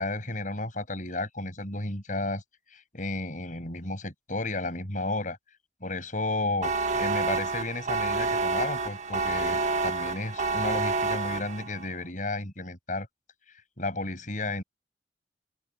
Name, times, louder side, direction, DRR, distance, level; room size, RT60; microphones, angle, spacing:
voice 1, 0.0-2.4 2.7-5.4 5.8-13.1 13.8-14.6, left 2 dB, 45° left, 7.1 m, -33 dB
sound 1, 6.6-11.9, right 3 dB, 40° right, 1.6 m, -28 dB
open air
head